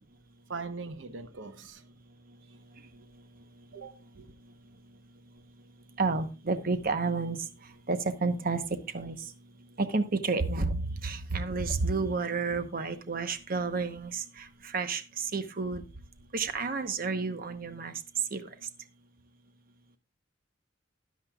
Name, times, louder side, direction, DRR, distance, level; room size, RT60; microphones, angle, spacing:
voice 1, 0.5-1.8 3.7-4.3, right 4 dB, 90° right, 0.9 m, -41 dB
voice 2, 6.0-7.4 7.9-8.6 8.9-9.2 9.8-15.8 16.3-17.9 18.3-18.5, right 4 dB, 50° right, 0.9 m, -30 dB
13.0 x 10.5 x 2.3 m
head